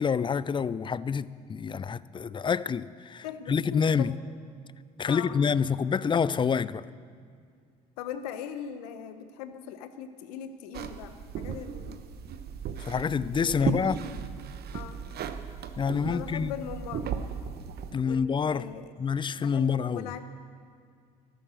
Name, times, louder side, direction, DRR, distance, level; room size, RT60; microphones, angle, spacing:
voice 1, 0.0-4.2 5.0-6.9 12.8-14.0 15.8-16.5 17.9-18.7 19.0-20.1, left 6 dB, 25° left, 0.5 m, -27 dB
voice 2, 3.2-4.1 5.1-5.4 8.0-12.0 13.3-14.0 14.7-15.0 16.0-17.1 18.0-18.8 19.3-20.2, left 9 dB, 80° left, 1.0 m, -40 dB
sound 1, 10.7-17.9, right 7 dB, 55° right, 1.0 m, -36 dB
14.5 x 11.5 x 6.5 m
hypercardioid pair, 60°, 20 cm